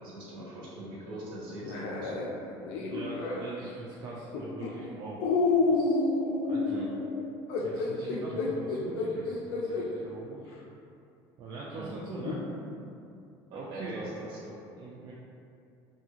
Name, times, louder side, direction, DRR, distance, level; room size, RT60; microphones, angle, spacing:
voice 1, 0.0-2.1 6.7-6.9 8.4-8.5 11.7-12.0 13.5-14.5, right 1 dB, 60° right, -6 dB, 0.9 m, -42 dB
sound 1, 1.6-3.5 4.3-4.7 5.2-9.9 10.5-10.6 12.2-12.4, left 3 dB, 85° left, 0.4 m, -29 dB
voice 2, 2.6-5.3 5.6-6.1 6.4-6.8 7.6-8.3 8.6-10.5 11.4-12.4 13.5-14.0 14.8-15.1, right 3 dB, 40° right, -6 dB, 0.4 m, -42 dB
2.7 x 2.5 x 2.8 m, 2.5 s
cardioid pair, 145°, 10 cm